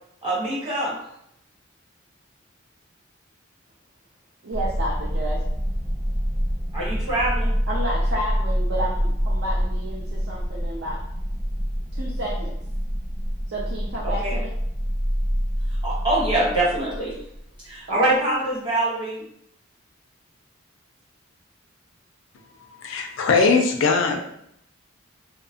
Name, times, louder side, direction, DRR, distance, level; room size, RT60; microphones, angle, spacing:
voice 1, 0.2-0.9 6.7-7.5 14.0-14.3 15.8-17.1 17.6-19.2, right 1 dB, 25° right, -7 dB, 1.0 m, -24 dB
voice 2, 4.4-5.4 7.7-11.0 11.9-12.5 13.5-14.5 17.9-18.1, right 1 dB, 60° right, -4 dB, 0.5 m, -31 dB
sound 1, 4.5-17.4, equal, ahead, 0.6 m, -26 dB
voice 3, 22.8-24.2, left 4 dB, 70° left, 3 dB, 0.4 m, -20 dB
2.7 x 2.1 x 2.7 m, 0.74 s
head